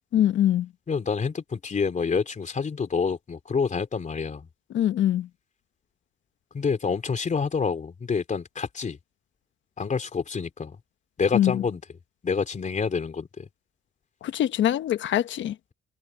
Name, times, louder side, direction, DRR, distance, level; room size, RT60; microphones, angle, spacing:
voice 1, 0.1-0.7 4.7-5.3 11.3-11.6 14.2-15.5, left 11 dB, 70° left, 1.1 m, -23 dB
voice 2, 0.9-4.5 6.5-9.0 9.8-10.8 11.2-11.8 12.2-13.5, left 5 dB, 40° left, 3.5 m, -27 dB
cardioid pair, 90°, 20 cm